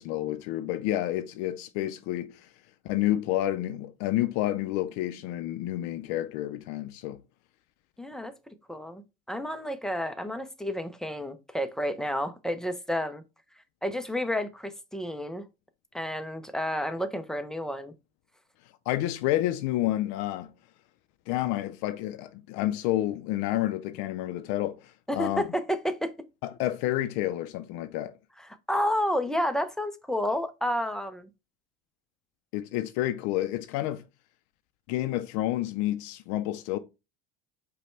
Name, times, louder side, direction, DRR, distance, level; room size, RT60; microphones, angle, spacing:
voice 1, 0.0-2.5 2.8-7.2 18.9-20.5 21.3-25.4 26.4-28.1 32.5-34.1 34.9-36.8, left 14 dB, 70° left, 0.5 m, -29 dB
voice 2, 8.0-8.3 8.7-13.2 13.8-15.5 15.9-17.9 25.1-26.1 28.5-31.3, equal, ahead, 0.4 m, -30 dB
5.1 x 2.2 x 4.3 m
supercardioid pair, 115°, 29 cm